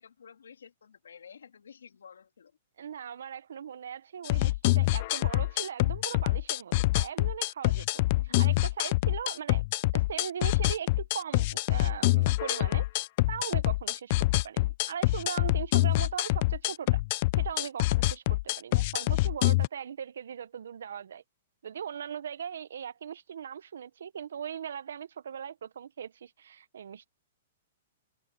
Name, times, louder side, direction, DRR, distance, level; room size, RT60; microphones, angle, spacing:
voice 1, 0.0-2.5 5.6-5.7 8.1-8.5, left 7 dB, 85° left, 2.5 m, -52 dB
voice 2, 2.8-9.6 9.9-12.9 13.3-17.0 17.3-21.2 21.6-27.1, right 8 dB, 75° right, 1.1 m, -39 dB
sound 1, 4.2-19.7, left 20 dB, 50° left, 0.4 m, -26 dB
hypercardioid pair, 130°, 0 cm